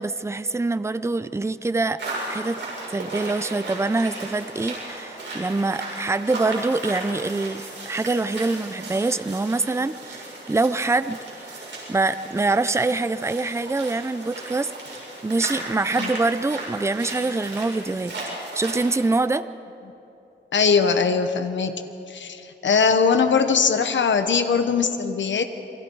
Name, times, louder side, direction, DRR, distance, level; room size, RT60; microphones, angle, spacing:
voice 1, 0.0-2.0 2.3-2.6 2.9-11.2 11.5-14.7 15.2-18.1 18.5-19.4, right 3 dB, 15° right, 13 dB, 0.6 m, -25 dB
sound 1, 2.0-19.1, right 2 dB, 80° right, 6.9 m, -36 dB
voice 2, 20.5-21.8 22.1-25.4, left 5 dB, 85° left, 7 dB, 1.1 m, -21 dB
27.5 x 24.5 x 4.7 m, 2.8 s
wide cardioid pair, 105°, 19 cm